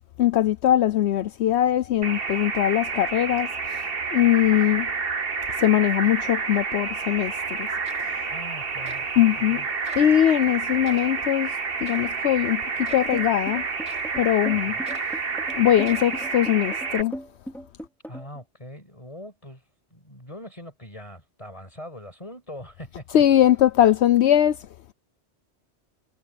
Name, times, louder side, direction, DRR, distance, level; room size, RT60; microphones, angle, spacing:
voice 1, 0.2-4.9 5.5-7.7 8.0-8.3 9.2-9.6 10.0-13.7 14.2-14.8 15.5-17.2 23.1-24.7, left 11 dB, 75° left, 0.9 m, -21 dB
sound 1, 2.0-17.0, right 4 dB, 55° right, 1.6 m, -29 dB
sound 2, 7.5-7.6 7.8-8.3 8.9-9.1 9.9-10.2 10.8-11.1 11.9-12.2 12.8-13.2 13.9-14.2 14.9-15.2 15.8-16.2, right 3 dB, 85° right, 5.1 m, -46 dB
voice 2, 8.3-9.2 9.5-9.7 14.5-14.9 18.0-19.6 19.9-23.2, left 1 dB, 30° left, 5.9 m, -42 dB
sound 3, 13.1-18.4, equal, ahead, 3.9 m, -37 dB
omnidirectional pair, 1.2 m